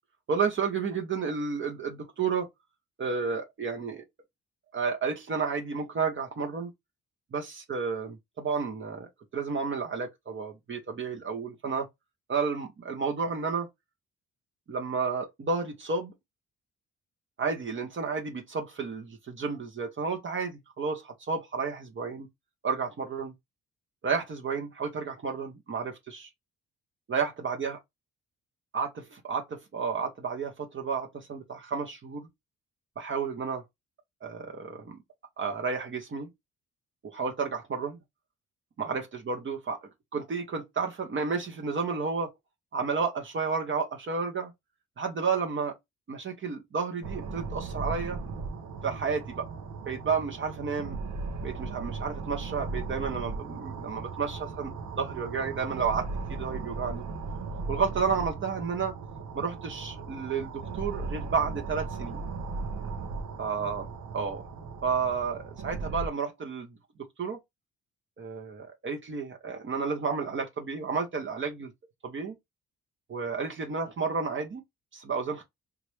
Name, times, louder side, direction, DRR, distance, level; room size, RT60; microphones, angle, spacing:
voice 1, 0.3-2.5 3.0-4.0 4.7-6.7 7.3-11.9 12.3-13.7 14.7-16.1 17.4-22.3 22.6-23.3 24.0-26.3 27.1-27.8 28.7-32.3 33.0-33.6 34.2-35.0 35.4-36.3 37.0-38.0 38.8-39.8 40.1-42.3 42.7-44.5 45.0-45.8 46.1-48.2 48.8-49.4 49.9-51.0 51.4-57.0 57.7-58.9 59.3-62.2 63.4-63.9 64.1-64.4 64.8-66.7 67.2-67.4 68.2-71.7 72.0-72.4 73.1-74.6 74.9-75.4, right 5 dB, 40° right, 0.9 m, -31 dB
sound 1, 47.0-66.1, right 4 dB, 75° right, 0.9 m, -37 dB
3.1 x 2.4 x 3.2 m
cardioid pair, 90°, 30 cm